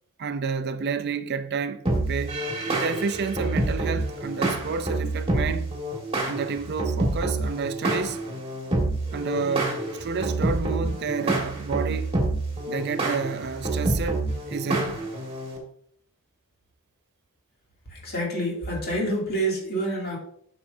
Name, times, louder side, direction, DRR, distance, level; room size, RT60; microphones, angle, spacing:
voice 1, 0.2-5.7 6.3-8.2 9.1-12.1 12.7-15.1, right 5 dB, 50° right, 0.4 m, -30 dB
sound 1, 1.8-15.6, right 2 dB, 25° right, 1.6 m, -27 dB
voice 2, 17.9-20.2, right 1 dB, 45° left, 2.5 m, -27 dB
8.5 x 6.1 x 2.6 m
head